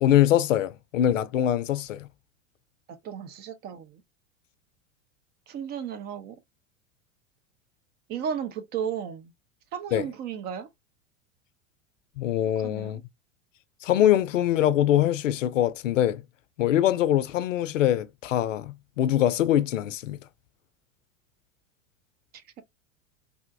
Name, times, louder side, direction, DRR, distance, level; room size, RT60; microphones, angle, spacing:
voice 1, 0.0-2.1 9.9-10.0 12.2-13.0 13.8-16.2 16.6-20.2, left 12 dB, 75° left, 0.5 m, -23 dB
voice 2, 2.9-4.0 5.5-6.4 8.1-9.3 9.7-10.7 12.6-13.0, right 8 dB, 25° right, 0.4 m, -34 dB
3.4 x 2.5 x 2.5 m
figure-of-eight pair, 90°, 39 cm